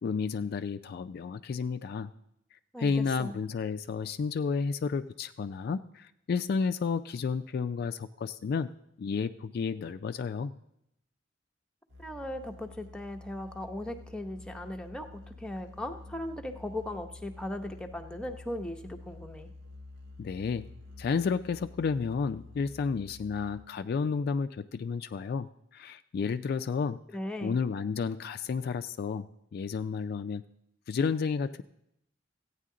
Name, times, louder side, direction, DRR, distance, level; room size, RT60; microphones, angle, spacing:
voice 1, 0.0-2.1 2.8-8.7 9.0-10.5 20.2-20.7 21.0-25.5 25.7-27.0 27.4-30.4 30.9-31.6, left 5 dB, 55° left, 11 dB, 0.3 m, -31 dB
voice 2, 2.7-3.4 12.0-19.5 27.1-27.6, left 1 dB, 5° left, 4 dB, 0.7 m, -38 dB
Musical instrument, 11.9-23.9, left 3 dB, 70° right, 1.0 m, -49 dB
14.5 x 9.1 x 3.7 m, 0.78 s
head